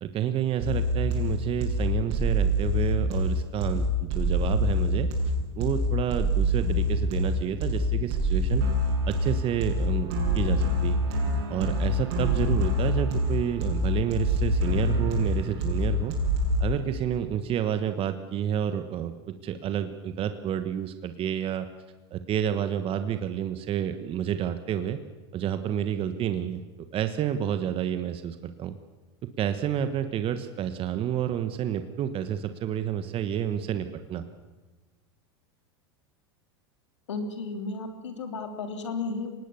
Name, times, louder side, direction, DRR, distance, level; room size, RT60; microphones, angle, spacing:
voice 1, 0.0-5.1 5.6-8.6 9.1-11.0 11.5-16.1 16.6-19.1 19.4-21.7 22.1-25.0 25.3-26.6 26.9-28.8 29.4-34.2, right 9 dB, 40° right, 10 dB, 1.3 m, -29 dB
sound 1, 0.6-16.6, equal, 60° right, 7.1 m, -26 dB
voice 2, 37.1-39.4, left 4 dB, 90° left, 6 dB, 2.9 m, -33 dB
24.5 x 19.0 x 7.0 m, 1.2 s
hypercardioid pair, 95°, 15 cm